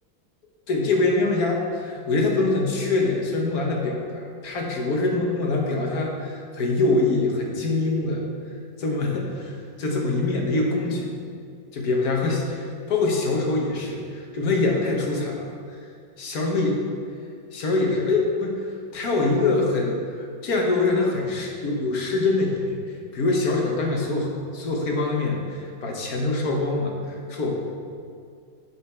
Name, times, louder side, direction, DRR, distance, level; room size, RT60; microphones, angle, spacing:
voice 1, 0.7-8.2 8.8-11.1 11.7-15.5 16.2-16.8 17.5-18.6 18.9-22.8 23.1-27.5, left 3 dB, 55° left, 0 dB, 1.5 m, -24 dB
8.6 x 6.5 x 4.4 m, 2.2 s
omnidirectional pair, 2.1 m